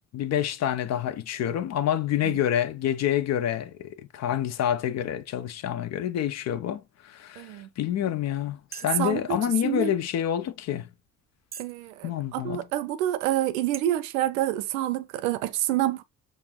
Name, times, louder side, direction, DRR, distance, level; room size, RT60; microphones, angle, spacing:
voice 1, 0.1-10.9 12.0-12.6, left 10 dB, 40° left, 0.5 m, -28 dB
voice 2, 7.4-7.7 9.0-9.9 11.6-16.0, right 13 dB, 65° right, 0.6 m, -28 dB
sound 1, 8.7-9.2 9.9-10.0 10.6-10.7 11.5-11.8 12.4-12.5 13.2-13.3 13.7-13.8, right 8 dB, 20° right, 0.5 m, -41 dB
6.7 x 2.6 x 2.9 m
figure-of-eight pair, 45°, 43 cm